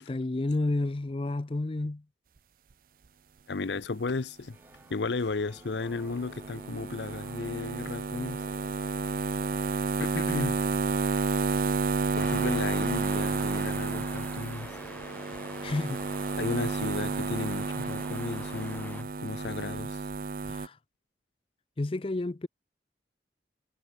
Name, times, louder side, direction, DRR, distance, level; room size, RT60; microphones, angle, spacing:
voice 1, 0.0-2.0 15.6-16.0 20.4-20.8 21.8-22.5, left 2 dB, 30° left, 0.5 m, -30 dB
voice 2, 3.5-4.6 4.9-8.4 10.0-10.6 12.2-14.7 16.4-20.0, left 3 dB, 75° left, 0.7 m, -34 dB
sound 1, 4.5-9.8, right 1 dB, 10° right, 6.3 m, -56 dB
sound 2, 5.8-20.7, right 4 dB, 50° right, 0.5 m, -31 dB
sound 3, 12.2-19.0, left 1 dB, 10° left, 4.9 m, -45 dB
head